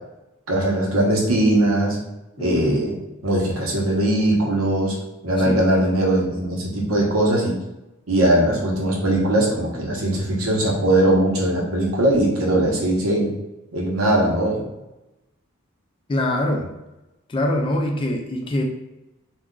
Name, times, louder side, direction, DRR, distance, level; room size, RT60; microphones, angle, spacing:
voice 1, 0.5-2.0 2.4-2.9 3.2-4.9 5.2-7.5 8.1-13.3 13.7-14.6, right 1 dB, 90° right, -2 dB, 0.9 m, -20 dB
voice 2, 2.4-2.8 5.4-5.6 16.1-16.7 17.3-18.6, left 1 dB, 25° left, 2 dB, 0.3 m, -24 dB
2.3 x 2.2 x 3.7 m, 0.97 s
head